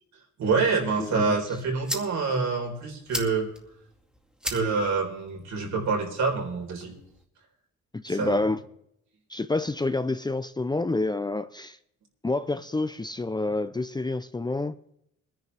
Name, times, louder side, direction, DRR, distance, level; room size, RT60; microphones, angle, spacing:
voice 1, 0.4-3.5 4.4-6.9 8.1-8.4, right 4 dB, 65° right, 4.3 m, -26 dB
voice 2, 1.0-1.4 7.9-8.6 9.3-11.8 12.2-14.8, left 2 dB, 15° left, 0.6 m, -28 dB
sound 1, 1.2-7.2, equal, 5° right, 2.2 m, -40 dB
22.0 x 10.5 x 3.5 m
cardioid pair, 90°, 30 cm